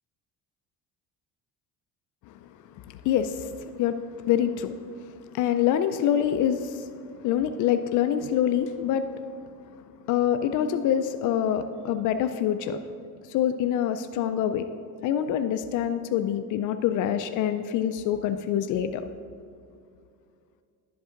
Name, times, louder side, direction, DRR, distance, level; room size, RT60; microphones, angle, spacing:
voice 1, 2.7-6.9 7.2-9.1 10.1-12.8 13.2-14.7 15.0-19.1, left 10 dB, 60° left, 8 dB, 0.4 m, -26 dB
11.0 x 7.8 x 3.8 m, 2.4 s
cardioid pair, 175°, 35 cm